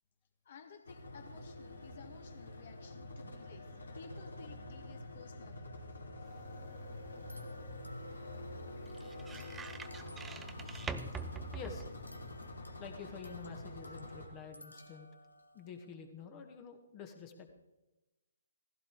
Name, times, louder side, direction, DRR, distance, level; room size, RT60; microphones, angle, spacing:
voice 1, 0.4-3.7 3.9-5.7, left 5 dB, 50° left, 5 dB, 2.6 m, -55 dB
sound 1, 0.8-14.3, left 1 dB, 70° left, 3.2 m, -47 dB
sound 2, 6.3-12.5, right 5 dB, 10° right, 0.7 m, -47 dB
sound 3, 7.1-15.9, left 1 dB, 90° left, 2.1 m, -59 dB
voice 2, 11.5-11.8 12.8-15.1 15.5-17.5, left 6 dB, 25° left, 5 dB, 1.9 m, -48 dB
16.5 x 16.0 x 4.8 m, 1.0 s
figure-of-eight pair, 135°, 0 cm